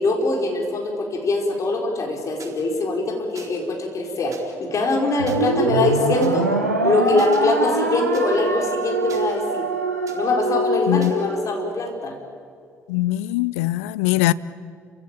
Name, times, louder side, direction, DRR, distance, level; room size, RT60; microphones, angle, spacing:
voice 1, 0.0-6.6 6.8-9.7 10.1-12.1, left 2 dB, 45° left, 4.6 m, -23 dB
sound 1, 2.4-2.5 3.3-3.7 4.3-4.4 5.3-5.4 6.2-6.3 7.2-7.4 8.1-8.2 9.1-9.6 10.1-10.2 11.0-11.2, right 6 dB, 45° right, 4.2 m, -42 dB
sound 2, 5.2-11.7, right 2 dB, 90° right, 1.3 m, -23 dB
voice 2, 12.9-14.3, left 17 dB, 70° left, 0.5 m, -21 dB
29.5 x 16.0 x 8.9 m
figure-of-eight pair, 45°, 8 cm